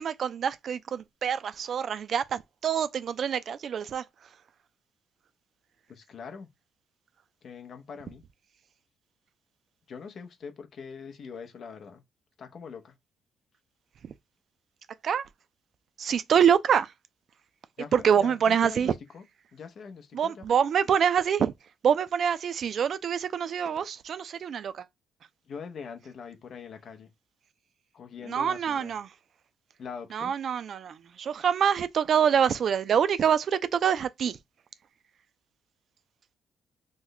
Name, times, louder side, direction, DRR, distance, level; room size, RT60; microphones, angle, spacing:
voice 1, 0.0-4.3 14.0-14.1 15.0-15.3 16.0-16.9 17.9-18.9 20.1-21.5 21.8-24.9 28.3-29.1 30.1-34.4, right 8 dB, 60° right, 0.4 m, -26 dB
voice 2, 5.9-6.5 7.4-8.2 9.9-12.0 12.4-12.9 17.8-19.2 19.5-20.4 25.5-27.1 27.9-29.0 29.8-30.3, left 6 dB, 60° left, 0.6 m, -43 dB
3.1 x 2.1 x 3.8 m
cardioid pair, 90°, 0 cm